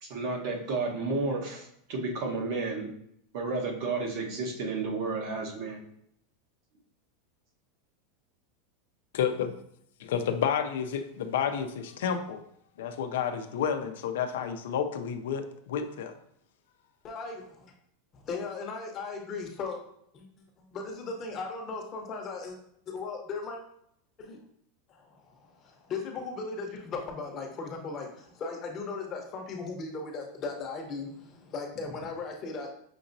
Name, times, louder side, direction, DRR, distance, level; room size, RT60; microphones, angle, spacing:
voice 1, 0.0-2.9 3.3-5.8, right 3 dB, 55° right, 0 dB, 1.1 m, -32 dB
voice 2, 9.1-9.5 10.0-12.4 12.8-16.1, left 8 dB, 80° left, 7 dB, 0.5 m, -30 dB
voice 3, 17.0-17.7 18.1-19.8 20.7-22.6 22.9-23.6 24.2-24.4 24.9-32.7, left 4 dB, 30° left, 2 dB, 0.8 m, -37 dB
5.9 x 2.9 x 2.6 m, 0.72 s
supercardioid pair, 150°, 0 cm